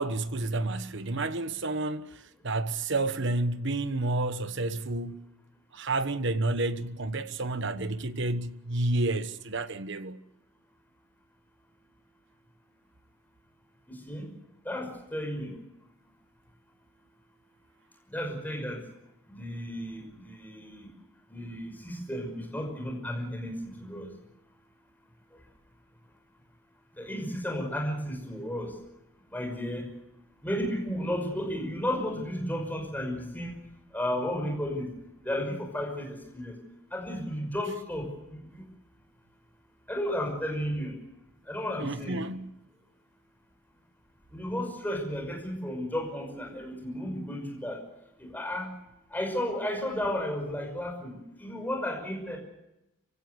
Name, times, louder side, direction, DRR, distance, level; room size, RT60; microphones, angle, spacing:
voice 1, 0.0-5.2 5.7-10.2 41.8-42.5, right 2 dB, 55° right, 1.2 m, -30 dB
voice 2, 13.9-14.3 14.6-15.5 18.1-18.8 19.3-20.9 21.3-24.1 27.0-28.8 29.3-29.8 30.4-33.6 33.9-34.9 35.2-36.6 36.9-38.6 39.9-41.0 41.5-42.3 44.3-47.8 48.2-48.7 49.1-52.4, equal, 10° left, 5.9 m, -33 dB
26.5 x 16.5 x 8.1 m
head